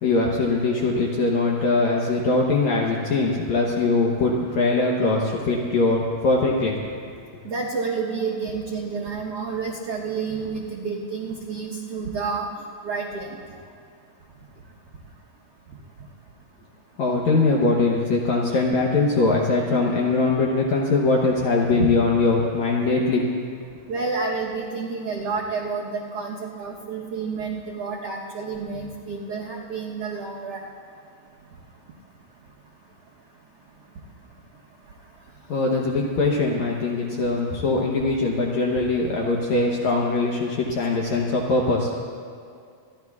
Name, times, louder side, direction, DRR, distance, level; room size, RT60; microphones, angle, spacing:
voice 1, 0.0-6.8 17.0-23.2 35.5-42.1, left 3 dB, 75° left, -1 dB, 1.7 m, -22 dB
voice 2, 7.4-12.5 12.8-13.4 21.7-21.9 23.9-30.6, right 5 dB, 85° right, -4 dB, 1.3 m, -29 dB
28.5 x 12.5 x 2.4 m, 2.3 s
omnidirectional pair, 4.4 m